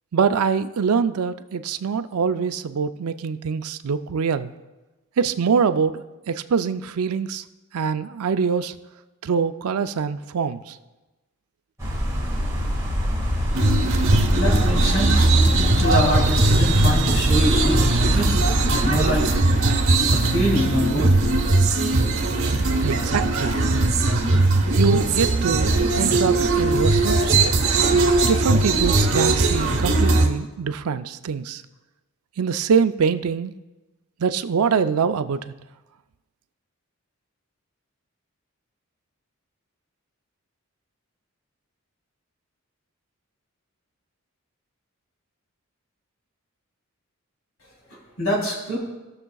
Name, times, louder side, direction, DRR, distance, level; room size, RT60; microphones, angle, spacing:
voice 1, 0.1-4.5 5.2-7.4 7.7-8.7 9.2-10.8 22.8-23.6 24.7-27.4 28.3-31.6 32.4-33.5 34.2-35.5, right 6 dB, 80° right, 11 dB, 0.4 m, -24 dB
sound 1, 11.8-19.4, equal, 15° right, 1.7 m, -24 dB
sound 2, 13.5-30.3, right 2 dB, 60° right, 1.0 m, -19 dB
voice 2, 14.3-15.3 15.7-18.3 18.7-19.3 20.1-21.2 47.9-48.8, equal, 70° left, -3 dB, 3.2 m, -25 dB
17.0 x 6.7 x 2.3 m, 1.1 s
head